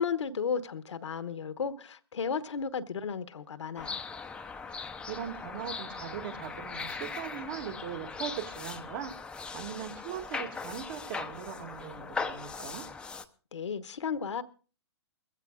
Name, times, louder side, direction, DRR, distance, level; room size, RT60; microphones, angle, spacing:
voice 1, 0.0-4.0 13.5-14.4, left 6 dB, 75° left, 1.2 m, -34 dB
sound 1, 3.8-13.2, left 4 dB, 5° left, 0.7 m, -39 dB
voice 2, 5.1-9.1 9.5-12.8, right 9 dB, 45° right, 2.2 m, -40 dB
22.0 x 15.5 x 2.5 m
hypercardioid pair, 135°, 15 cm